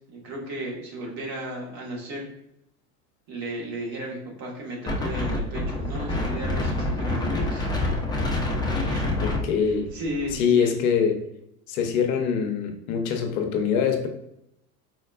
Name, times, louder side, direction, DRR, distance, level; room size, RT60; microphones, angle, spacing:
voice 1, 0.0-2.3 3.3-7.7 8.7-9.2 9.6-10.7, right 1 dB, 50° right, -2 dB, 1.5 m, -35 dB
Wind, 4.9-10.4, left 2 dB, 10° left, 0.6 m, -27 dB
voice 2, 9.2-9.9 10.3-11.2 11.7-14.1, left 7 dB, 60° left, 5 dB, 0.7 m, -24 dB
4.3 x 2.2 x 2.4 m, 0.77 s
hypercardioid pair, 85°, 48 cm